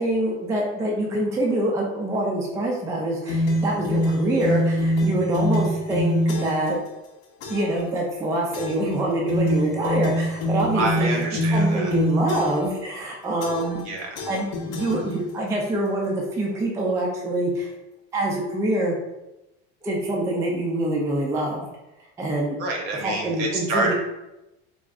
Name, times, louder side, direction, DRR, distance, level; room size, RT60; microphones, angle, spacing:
voice 1, 0.0-6.8 7.5-11.1 11.5-13.8 14.3-17.7 18.1-18.9 19.8-21.7 22.2-22.6 23.0-23.9, right 1 dB, 10° right, -1 dB, 0.3 m, -25 dB
sound 1, 3.3-6.7 7.4-7.8 8.5-8.9 9.3-12.7 13.4-13.9 14.2-15.5, equal, 55° left, 0.6 m, -25 dB
voice 2, 10.7-11.9 13.8-14.2 22.5-23.9, right 3 dB, 60° right, 0 dB, 0.8 m, -27 dB
3.5 x 2.0 x 2.4 m, 0.95 s
supercardioid pair, 125°, 29 cm